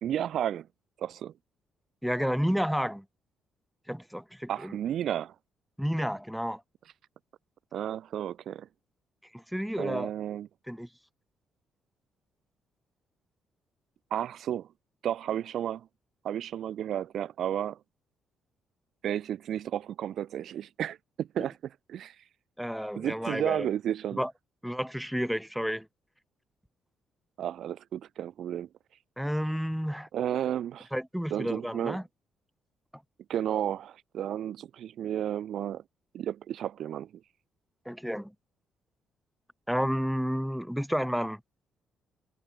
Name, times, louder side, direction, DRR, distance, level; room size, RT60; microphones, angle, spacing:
voice 1, 0.0-0.7 1.0-1.3 4.5-5.3 7.7-8.7 9.8-10.5 14.1-14.7 15.0-15.9 16.2-17.8 19.0-21.6 21.9-22.2 23.0-24.2 27.4-28.7 30.1-30.9 31.3-32.0 33.3-35.8 36.1-37.1, right 10 dB, 70° right, 0.4 m, -32 dB
voice 2, 2.0-3.0 3.9-4.8 5.8-6.6 9.3-10.1 10.7-10.9 22.6-23.7 24.2-24.3 24.6-25.9 29.2-30.1 30.9-32.0 37.9-38.3 39.7-41.4, equal, ahead, 1.1 m, -31 dB
cardioid pair, 90°, 0 cm